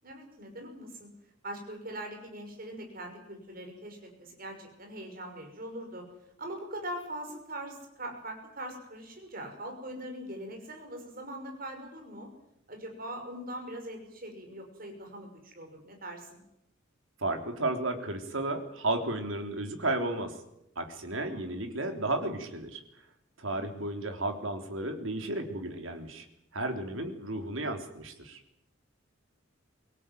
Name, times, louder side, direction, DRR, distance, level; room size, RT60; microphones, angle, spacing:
voice 1, 0.0-1.1 1.4-6.0 6.4-12.3 12.7-16.4 21.2-21.6 23.5-23.9, right 1 dB, 45° right, 4 dB, 6.2 m, -42 dB
voice 2, 17.2-20.4 20.8-22.8 23.4-26.3 26.5-28.4, right 2 dB, 75° right, 5 dB, 3.6 m, -33 dB
25.0 x 17.0 x 9.4 m, 0.81 s
head